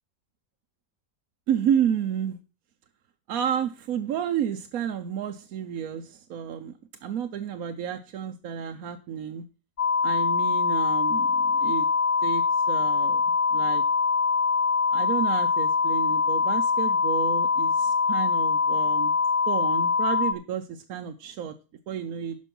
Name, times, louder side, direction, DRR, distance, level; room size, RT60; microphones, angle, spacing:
voice 1, 1.5-2.4 3.3-6.7 7.0-9.4 10.0-11.9 12.2-13.8 14.9-19.1 19.5-21.6 21.9-22.4, right 9 dB, 80° right, 5 dB, 1.1 m, -31 dB
sound 1, 9.8-20.3, left 5 dB, 55° left, 0.4 m, -23 dB
11.5 x 5.3 x 5.4 m, 0.33 s
omnidirectional pair, 1.5 m